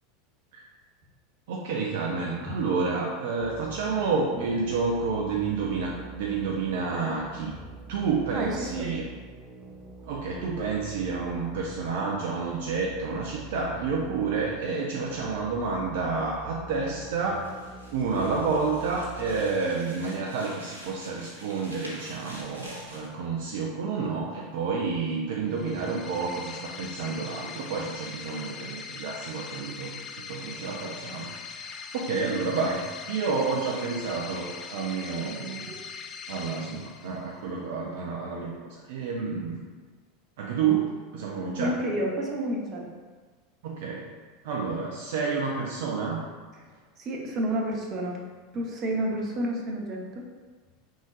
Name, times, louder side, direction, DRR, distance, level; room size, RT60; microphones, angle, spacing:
voice 1, 1.5-7.6 7.9-9.0 10.1-17.5 17.9-29.9 30.3-35.7 36.3-39.6 40.4-41.8 43.6-44.1 44.4-46.2, right 4 dB, 60° right, -2 dB, 0.5 m, -29 dB
sound 1, 3.4-19.4, right 3 dB, 15° right, 0.7 m, -45 dB
voice 2, 8.3-8.9 35.5-35.8 41.6-42.9 47.0-48.2 48.5-50.2, right 1 dB, 35° right, -1 dB, 0.9 m, -30 dB
sound 2, 17.2-23.1, equal, 90° right, 0.9 m, -47 dB
sound 3, 25.5-37.4, left 6 dB, 35° left, 0.4 m, -41 dB
5.0 x 3.7 x 2.4 m, 1.4 s
figure-of-eight pair, 80°, 0 cm